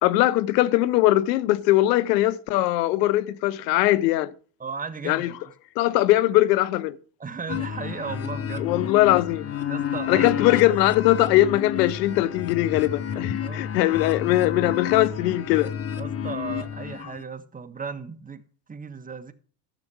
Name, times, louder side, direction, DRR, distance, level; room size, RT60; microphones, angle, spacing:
voice 1, 0.0-4.3 5.1-5.3 5.8-7.0 8.6-9.4 10.1-15.7, left 16 dB, 85° left, 1.0 m, -21 dB
voice 2, 4.6-5.5 7.2-8.7 9.7-10.6 13.1-13.7 14.2-14.3 16.0-18.4 18.7-19.3, right 5 dB, 15° right, 1.3 m, -36 dB
sound 1, 7.5-17.2, left 9 dB, 30° left, 0.9 m, -30 dB
13.0 x 6.8 x 4.7 m
supercardioid pair, 95°, 48 cm